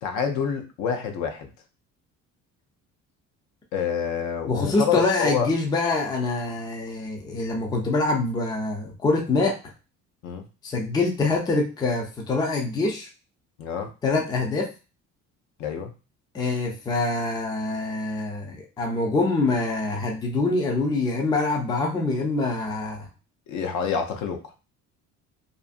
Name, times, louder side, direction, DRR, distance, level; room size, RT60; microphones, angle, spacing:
voice 1, 0.0-1.5 3.7-5.5 10.2-10.4 13.6-13.9 15.6-15.9 23.5-24.4, left 7 dB, 70° left, 6 dB, 0.6 m, -27 dB
voice 2, 4.5-9.6 10.6-13.1 14.0-14.7 16.3-23.1, left 3 dB, 15° left, 1 dB, 0.4 m, -25 dB
2.6 x 2.5 x 2.4 m, 0.32 s
cardioid pair, 155°, 30 cm